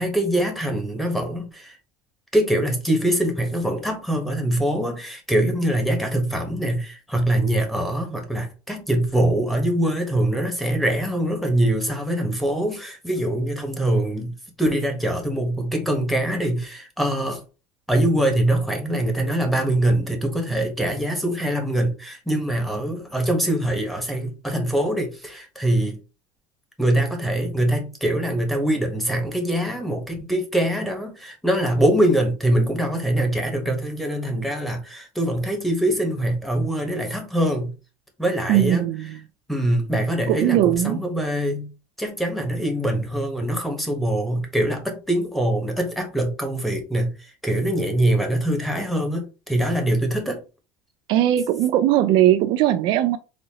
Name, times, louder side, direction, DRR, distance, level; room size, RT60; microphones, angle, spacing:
voice 1, 0.0-1.7 2.3-14.3 14.6-17.4 17.9-26.0 26.8-37.7 38.2-38.9 39.5-41.7 42.0-47.1 47.4-50.4, right 1 dB, ahead, 1.2 m, -23 dB
voice 2, 38.5-39.2 40.3-41.0 51.1-53.2, right 12 dB, 60° right, 0.4 m, -19 dB
4.2 x 2.5 x 2.9 m
supercardioid pair, 105°, 9 cm